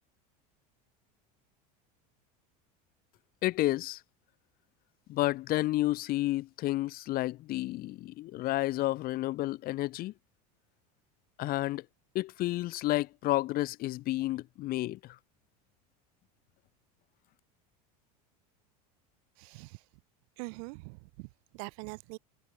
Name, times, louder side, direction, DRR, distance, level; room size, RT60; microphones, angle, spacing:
voice 1, 3.4-4.0 5.1-10.1 11.4-11.8 12.1-15.2, left 17 dB, 50° left, 2.5 m, -31 dB
voice 2, 19.4-19.9 20.4-22.2, right 33 dB, 70° right, 5.4 m, -44 dB
supercardioid pair, 125°, 20 cm